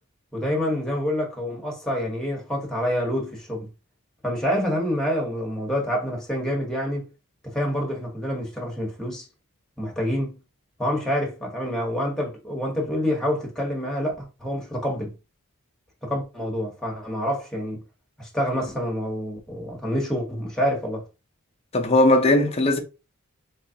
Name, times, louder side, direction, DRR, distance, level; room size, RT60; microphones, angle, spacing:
voice 1, 0.3-3.7 4.2-7.1 7.4-9.3 9.8-10.4 10.8-15.1 16.0-17.8 18.2-21.0, equal, 5° left, 1.0 m, -27 dB
voice 2, 21.7-22.8, left 1 dB, 25° left, 0.5 m, -18 dB
3.8 x 3.0 x 2.7 m
head